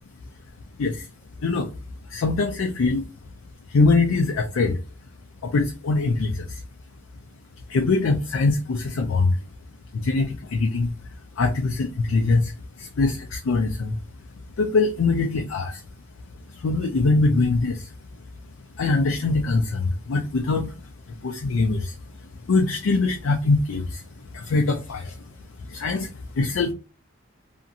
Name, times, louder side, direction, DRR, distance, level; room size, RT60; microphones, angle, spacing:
voice 1, 2.1-3.1 3.7-4.8 5.4-6.6 7.7-9.4 9.9-10.9 11.4-12.5 12.8-14.0 14.6-15.8 16.5-17.9 18.8-20.7 21.2-21.9 22.5-24.0 24.3-25.1 25.7-26.1 26.4-26.7, left 3 dB, 75° left, 0.4 m, -22 dB
2.8 x 2.5 x 2.6 m
head